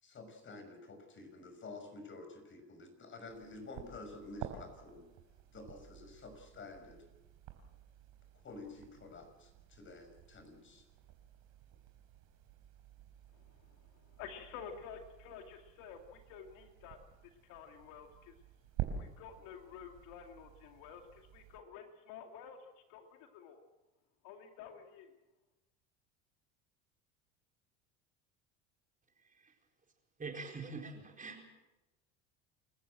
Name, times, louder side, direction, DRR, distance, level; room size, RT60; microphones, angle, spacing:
voice 1, 0.0-5.1 5.5-7.0 8.3-10.8, left 3 dB, 35° left, 7 dB, 6.0 m, -50 dB
sound 1, 3.3-21.6, right 9 dB, 65° right, 4.2 m, -50 dB
voice 2, 13.3-17.0 17.2-18.4 19.0-23.6 24.2-25.1, left 7 dB, 70° left, 5 dB, 2.5 m, -51 dB
voice 3, 30.2-31.4, right 4 dB, 25° right, 3 dB, 4.5 m, -44 dB
28.0 x 14.5 x 7.7 m, 1.0 s
supercardioid pair, 85°, 32 cm